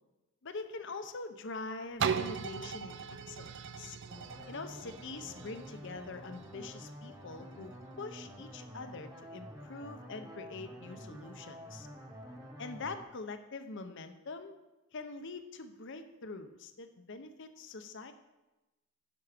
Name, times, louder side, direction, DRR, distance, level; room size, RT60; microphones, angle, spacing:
voice 1, 0.4-3.0 3.3-4.0 4.5-11.9 12.6-14.5 14.9-18.1, left 3 dB, 60° left, 9 dB, 0.8 m, -44 dB
sound 1, 2.0-7.7 8.3-8.4, right 7 dB, 60° right, 0.5 m, -39 dB
sound 2, 4.1-13.0, equal, 15° right, 1.2 m, -49 dB
10.5 x 6.1 x 5.1 m, 1.0 s
head